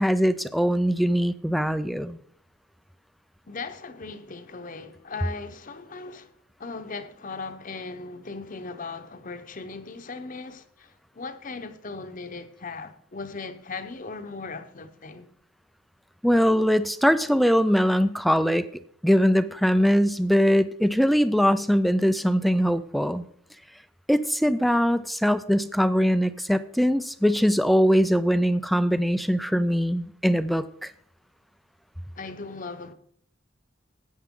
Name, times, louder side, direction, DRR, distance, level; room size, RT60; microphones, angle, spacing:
voice 1, 0.0-2.2 16.2-18.7 19.0-23.2 24.1-30.9, equal, ahead, 0.3 m, -22 dB
voice 2, 3.5-6.3 6.6-15.3 32.2-32.9, left 4 dB, 40° left, 0.8 m, -38 dB
13.5 x 9.2 x 3.7 m
head